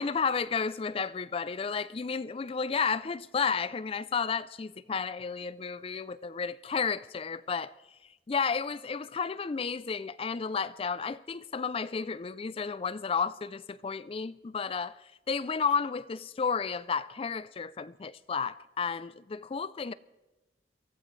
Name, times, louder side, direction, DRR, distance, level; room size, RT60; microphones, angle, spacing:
voice 1, 0.0-7.7 8.3-14.9 15.3-19.9, left 5 dB, 30° left, 0.4 m, -32 dB
23.5 x 14.5 x 3.2 m
head